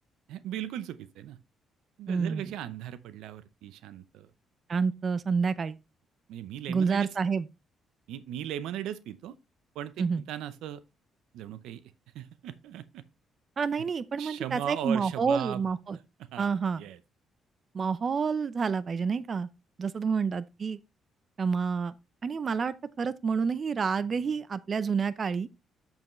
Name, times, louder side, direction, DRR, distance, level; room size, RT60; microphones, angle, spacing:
voice 1, 0.3-1.4 2.0-4.3 6.3-7.2 8.1-9.4 9.7-10.8 11.3-11.8 12.1-13.0 14.2-15.6 16.2-16.5 16.8-17.0, right 11 dB, 90° right, 0.6 m, -38 dB
voice 2, 2.1-2.5 4.7-5.8 6.7-7.5 10.0-10.2 13.6-16.0 16.4-16.8 17.7-19.5 19.8-20.8 21.4-21.9 22.2-25.5, right 5 dB, 45° right, 0.6 m, -28 dB
7.6 x 7.2 x 3.1 m
cardioid pair, 90°, 0 cm